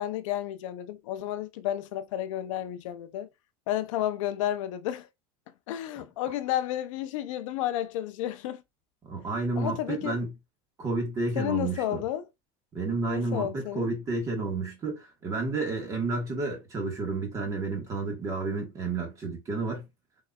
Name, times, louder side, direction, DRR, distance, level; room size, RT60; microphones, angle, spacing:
voice 1, 0.0-3.3 3.7-5.1 5.7-8.6 9.6-10.2 11.4-12.3 13.1-13.9, left 12 dB, 90° left, 0.6 m, -31 dB
voice 2, 9.1-10.3 10.8-12.0 12.7-19.8, right 3 dB, 20° right, 1.4 m, -31 dB
5.0 x 4.0 x 2.3 m
cardioid pair, 175°, 16 cm